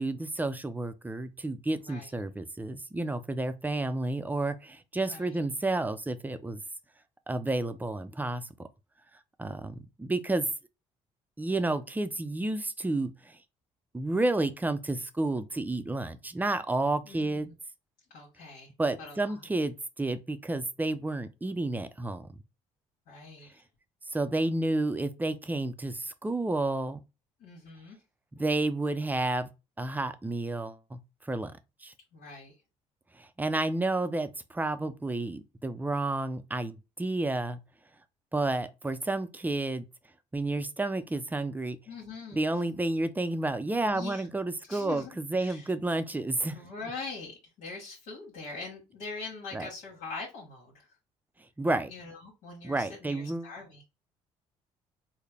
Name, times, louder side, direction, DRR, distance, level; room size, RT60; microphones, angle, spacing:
voice 1, 0.0-6.6 7.3-8.7 9.4-10.5 11.4-13.4 13.9-17.5 18.8-22.3 24.1-27.0 28.4-29.5 29.8-31.5 31.8-31.9 33.2-37.6 38.3-39.8 40.3-41.8 42.3-46.6 49.5-49.7 51.6-51.9 52.6-53.5, right 2 dB, 15° right, 0.5 m, -31 dB
voice 2, 5.0-5.4 17.0-17.5 18.1-18.7 19.0-19.5 23.1-23.6 27.4-28.0 32.1-32.5 41.9-42.5 43.8-44.3 44.7-45.7 46.5-50.9 51.9-53.8, left 4 dB, 75° left, 1.5 m, -43 dB
3.9 x 2.2 x 3.4 m
supercardioid pair, 75°, 14 cm